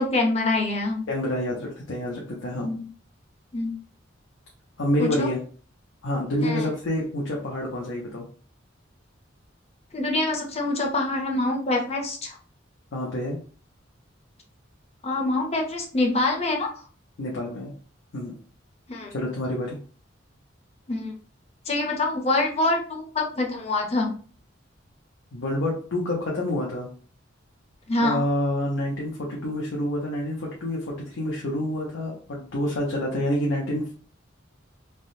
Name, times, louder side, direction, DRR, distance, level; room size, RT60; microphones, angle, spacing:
voice 1, 0.0-1.0 2.6-2.8 3.5-3.7 5.0-5.3 6.4-6.7 9.9-12.4 15.0-16.7 18.9-19.1 20.9-21.1 21.7-24.1 27.9-28.2, left 2 dB, 35° left, 1 dB, 0.6 m, -25 dB
voice 2, 1.1-2.7 4.8-5.4 6.0-8.3 12.9-13.4 17.2-17.7 18.1-18.3 19.1-19.8 25.3-26.9 28.0-33.9, left 1 dB, 80° left, -2 dB, 0.6 m, -28 dB
3.3 x 2.1 x 2.6 m, 0.42 s
head